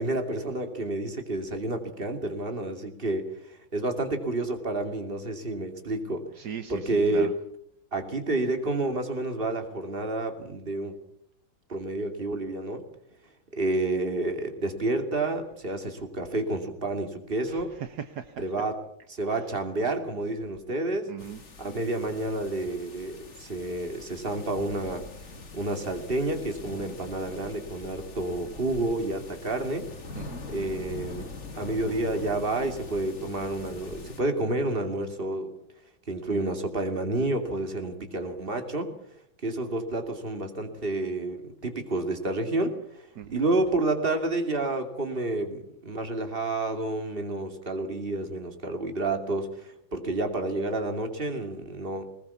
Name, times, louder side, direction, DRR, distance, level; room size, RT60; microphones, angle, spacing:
voice 1, 0.0-6.2 6.7-7.3 7.9-11.0 11.7-12.8 13.5-17.7 18.4-18.8 19.1-21.1 21.6-25.1 25.5-29.9 30.5-31.3 31.6-35.5 36.1-38.9 39.4-52.0, right 2 dB, 30° right, 6 dB, 2.7 m, -29 dB
voice 2, 6.3-7.3 17.5-18.4 19.3-19.4 21.1-21.4 30.1-30.5 43.2-43.4, right 8 dB, 70° right, 9 dB, 1.5 m, -39 dB
sound 1, 21.2-34.2, left 3 dB, 45° left, 2.0 m, -43 dB
20.5 x 20.5 x 7.1 m, 0.71 s
omnidirectional pair, 1.8 m